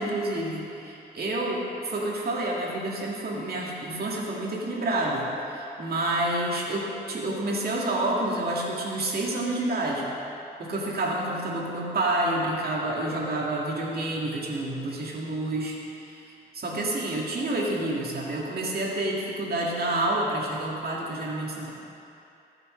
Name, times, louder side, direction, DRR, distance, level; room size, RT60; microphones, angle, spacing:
voice 1, 0.0-10.1 10.6-15.8 16.1-21.7, right 1 dB, 60° right, -3 dB, 2.2 m, -29 dB
15.0 x 6.6 x 3.3 m, 2.8 s
cardioid pair, 60°, 18 cm